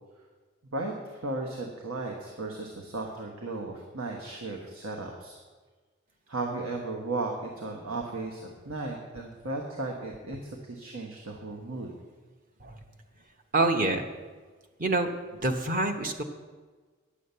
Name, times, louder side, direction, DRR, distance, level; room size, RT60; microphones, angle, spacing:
voice 1, 0.7-5.4 6.3-8.4 8.6-11.9, right 2 dB, 90° right, 1 dB, 1.3 m, -35 dB
voice 2, 13.5-14.0 14.8-15.1 15.4-16.2, right 2 dB, 40° right, 5 dB, 1.0 m, -26 dB
10.0 x 7.3 x 8.2 m, 1.4 s
head